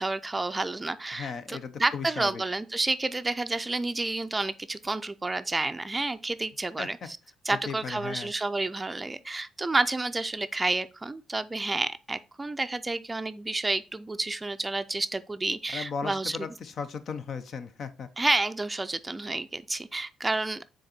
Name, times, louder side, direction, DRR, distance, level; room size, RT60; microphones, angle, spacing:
voice 1, 0.0-7.2 7.4-16.5 18.2-20.6, right 2 dB, 20° right, 0.4 m, -30 dB
voice 2, 1.2-2.4 6.8-6.9 7.5-8.3 15.7-18.1, left 5 dB, 55° left, 0.8 m, -36 dB
6.4 x 3.9 x 4.3 m
cardioid pair, 90°, 0 cm